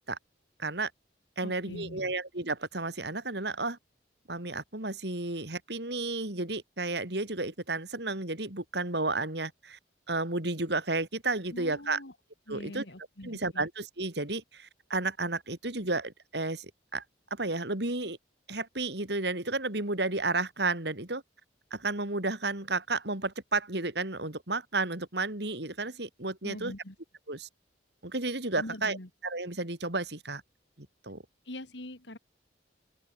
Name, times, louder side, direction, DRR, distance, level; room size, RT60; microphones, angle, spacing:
voice 1, 0.6-0.9 1.4-3.8 4.3-9.8 10.1-12.0 12.5-12.8 13.2-17.0 17.3-18.2 18.5-21.2 21.7-26.7 27.3-27.5 28.0-29.0 29.2-30.4 30.8-31.2, right 3 dB, 60° right, 3.4 m, -32 dB
voice 2, 1.4-2.1 11.5-12.1 12.5-13.7 26.4-26.9 28.6-29.1 31.4-32.2, left 1 dB, 70° left, 3.3 m, -43 dB
open air
head